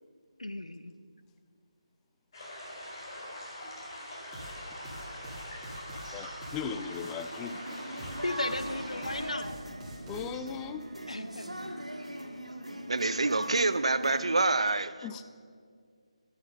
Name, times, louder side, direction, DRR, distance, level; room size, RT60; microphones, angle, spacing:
voice 1, 0.4-0.9 8.2-9.6 11.1-12.0, left 1 dB, 80° left, 10 dB, 0.9 m, -36 dB
sound 1, 2.3-9.3, left 1 dB, 40° left, 4.2 m, -43 dB
sound 2, 4.3-10.5, right 1 dB, 10° right, 2.1 m, -46 dB
voice 2, 6.1-7.6 10.1-10.9 15.0-15.2, left 7 dB, 10° left, 10 dB, 0.3 m, -38 dB
sound 3, 7.5-14.7, right 1 dB, 90° right, 1.8 m, -41 dB
voice 3, 12.9-14.9, right 3 dB, 60° right, 14 dB, 0.7 m, -26 dB
15.5 x 9.6 x 6.3 m, 2.1 s
figure-of-eight pair, 155°, 3 cm